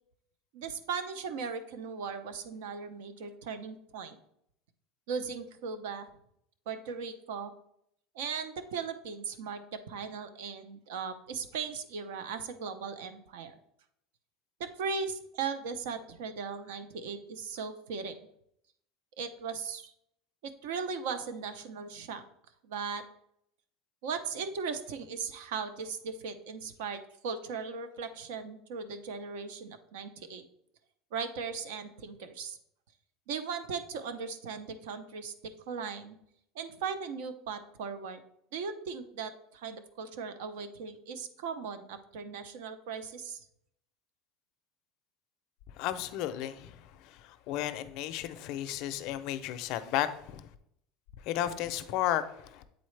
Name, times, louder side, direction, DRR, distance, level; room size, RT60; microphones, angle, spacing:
voice 1, 0.5-4.2 5.1-6.1 6.7-7.5 8.1-13.5 14.6-18.2 19.2-19.9 20.4-22.2 22.6-23.0 24.0-30.4 31.1-32.6 33.3-35.3 35.7-36.2 36.5-38.2 38.5-43.5, right 5 dB, 90° right, 10 dB, 0.6 m, -38 dB
voice 2, 45.7-50.5 51.2-52.6, left 12 dB, 50° left, 11 dB, 0.4 m, -34 dB
8.2 x 4.0 x 3.2 m, 0.74 s
cardioid pair, 175°, 0 cm